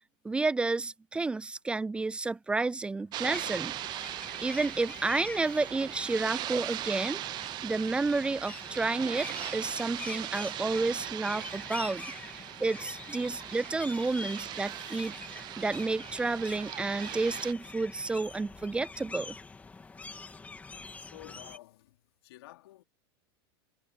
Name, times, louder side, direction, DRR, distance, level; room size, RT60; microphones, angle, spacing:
voice 1, 0.2-3.7 4.4-7.2 7.6-9.3 9.5-15.1 15.6-19.3, right 3 dB, 10° right, 0.4 m, -31 dB
sound 1, 3.1-17.5, right 14 dB, 35° right, 0.8 m, -40 dB
sound 2, 3.3-21.6, left 4 dB, 10° left, 2.8 m, -45 dB
voice 2, 21.1-22.0 22.2-22.8, left 16 dB, 75° left, 3.8 m, -51 dB
supercardioid pair, 140°, 13 cm